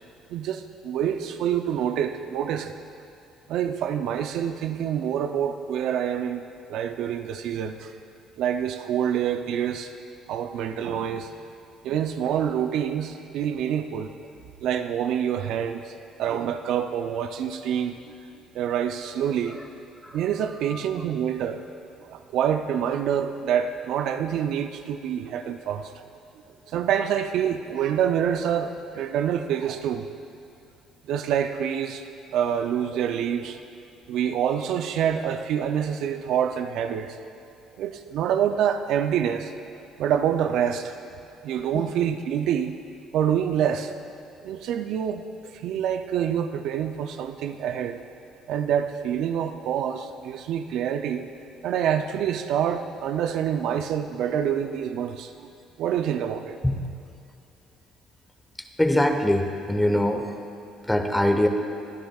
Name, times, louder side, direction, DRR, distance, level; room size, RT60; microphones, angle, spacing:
voice 1, 0.3-2.8 3.5-8.0 8.4-9.9 10.3-11.4 11.8-14.3 14.6-19.6 20.1-21.7 22.0-26.1 26.3-30.1 31.0-33.6 34.1-37.2 37.8-39.5 40.0-41.0 41.4-42.8 43.1-44.0 44.4-48.0 48.5-51.3 51.6-56.6, right 9 dB, 70° right, 7 dB, 0.5 m, -27 dB
voice 2, 58.8-60.4 60.8-61.5, left 1 dB, 10° left, 5 dB, 1.1 m, -22 dB
22.5 x 10.5 x 2.4 m, 2.7 s
supercardioid pair, 75°, 0 cm